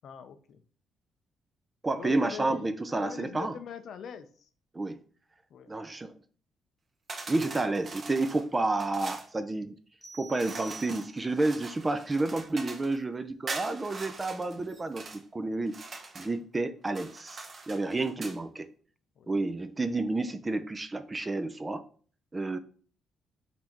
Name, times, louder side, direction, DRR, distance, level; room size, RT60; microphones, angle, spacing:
voice 1, 0.0-0.6 2.0-2.7 2.9-4.5 5.5-5.7 16.2-16.4 19.2-19.3, left 7 dB, 65° left, 10 dB, 0.5 m, -43 dB
voice 2, 1.8-3.5 4.7-5.0 5.7-6.2 7.3-9.7 10.2-18.7 19.3-21.8 22.3-22.6, right 2 dB, 20° right, 11 dB, 0.4 m, -30 dB
sound 1, 7.1-9.3 10.4-13.0 13.5-15.2 15.7-16.4 16.9-18.4, right 3 dB, 45° right, 1.0 m, -42 dB
sound 2, 10.0-11.5, right 4 dB, 25° left, 1.1 m, -48 dB
4.2 x 2.7 x 4.4 m, 0.43 s
cardioid pair, 90°, 0 cm